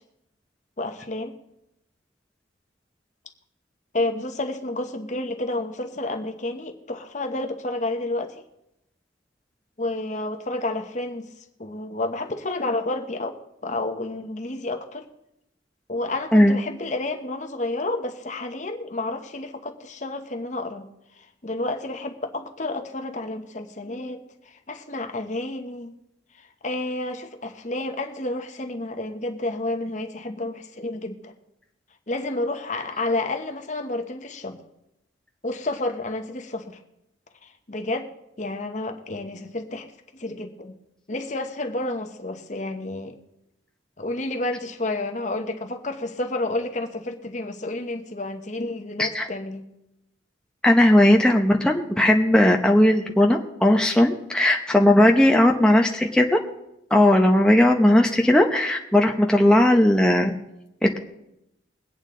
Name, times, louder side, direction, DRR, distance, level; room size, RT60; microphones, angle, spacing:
voice 1, 0.8-1.3 3.9-8.4 9.8-11.3 11.6-15.1 15.9-20.9 21.4-25.9 26.4-31.3 32.1-34.6 35.4-36.8 37.4-38.1 38.4-40.7 41.1-43.2 44.0-49.7 55.0-55.3, left 2 dB, 40° left, 5 dB, 1.0 m, -30 dB
voice 2, 50.6-56.4 56.9-60.3, left 1 dB, 5° left, 1 dB, 0.8 m, -17 dB
22.5 x 8.8 x 3.8 m, 0.86 s
head